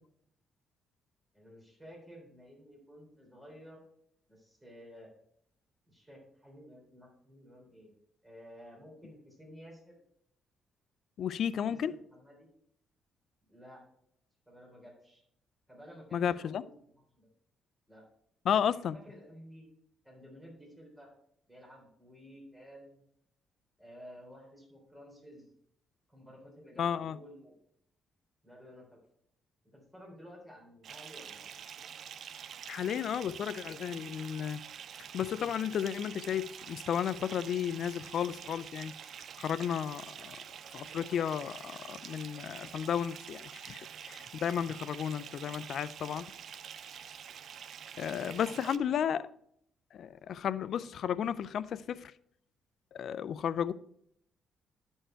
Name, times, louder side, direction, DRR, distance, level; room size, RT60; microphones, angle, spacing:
voice 1, 1.3-3.8 4.3-5.1 5.9-7.9 8.2-10.0 11.6-12.5 13.5-13.8 14.5-15.2 15.7-17.3 17.9-18.1 18.9-19.7 20.0-21.1 21.5-23.0 23.8-25.5 26.1-27.5 28.4-29.0 29.6-31.4 48.0-49.2, equal, 10° right, 3.7 m, -53 dB
voice 2, 11.2-11.9 16.1-16.6 18.5-19.0 26.8-27.2 32.7-34.6 35.1-38.9 39.4-40.4 40.7-46.3 48.0-49.3 49.9-52.1 52.9-53.7, left 8 dB, 65° left, 0.4 m, -33 dB
Bathtub (filling or washing) / Fill (with liquid), 30.8-48.8, right 8 dB, 60° right, 0.4 m, -47 dB
11.5 x 4.5 x 4.5 m
cardioid pair, 90°, 0 cm